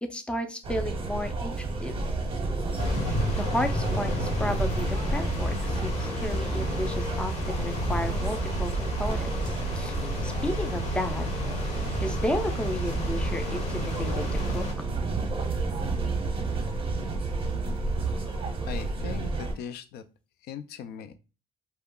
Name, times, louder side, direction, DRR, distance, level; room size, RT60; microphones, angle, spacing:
voice 1, 0.0-1.9 3.4-10.0 10.2-11.2 12.0-14.2 14.5-14.6, left 1 dB, 5° left, 6 dB, 0.4 m, -33 dB
sound 1, 0.6-19.5, right 3 dB, 30° right, 0.7 m, -31 dB
sound 2, 2.8-14.7, left 2 dB, 40° left, 0.8 m, -32 dB
sound 3, 7.6-18.3, right 6 dB, 75° right, 0.4 m, -39 dB
voice 2, 18.7-20.0 20.4-21.1, left 8 dB, 70° left, 10 dB, 0.4 m, -39 dB
2.3 x 2.1 x 3.6 m, 0.31 s
cardioid pair, 110°, 17 cm